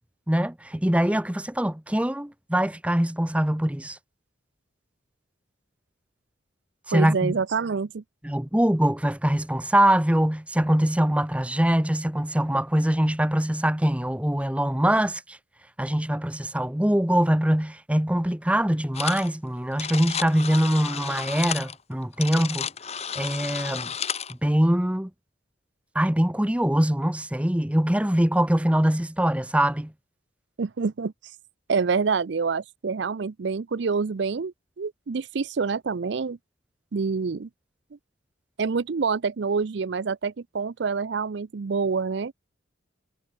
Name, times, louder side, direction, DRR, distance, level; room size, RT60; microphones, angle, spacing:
voice 1, 0.3-4.0 6.9-7.3 8.2-15.4 15.8-22.7 23.2-23.9 24.4-25.1 25.9-29.9, right 1 dB, 5° right, 0.8 m, -23 dB
voice 2, 6.9-8.0 30.6-31.1 31.7-36.4 36.9-37.5 38.6-42.3, right 5 dB, 60° right, 0.5 m, -27 dB
sound 1, 18.9-19.3 19.6-24.3, left 8 dB, 30° left, 1.4 m, -32 dB
head